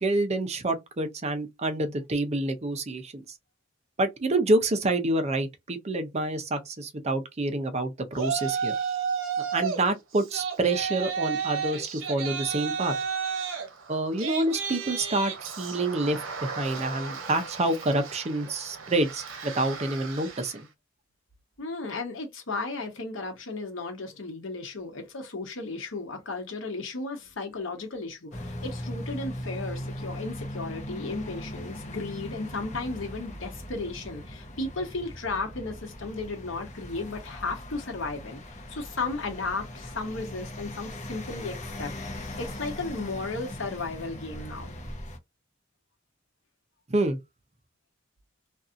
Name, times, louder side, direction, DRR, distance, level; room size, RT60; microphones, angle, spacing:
voice 1, 0.0-3.2 4.0-8.7 9.5-12.9 13.9-20.7 46.9-47.2, right 2 dB, 35° right, 0.6 m, -27 dB
Yell, 8.1-9.8 10.1-20.6, right 6 dB, 85° right, 0.7 m, -33 dB
voice 2, 21.6-38.4 38.7-41.9 42.4-44.7, left 3 dB, 80° left, 1.1 m, -34 dB
sound 1, 28.3-45.2, left 1 dB, 40° left, 0.7 m, -39 dB
2.6 x 2.4 x 2.5 m
head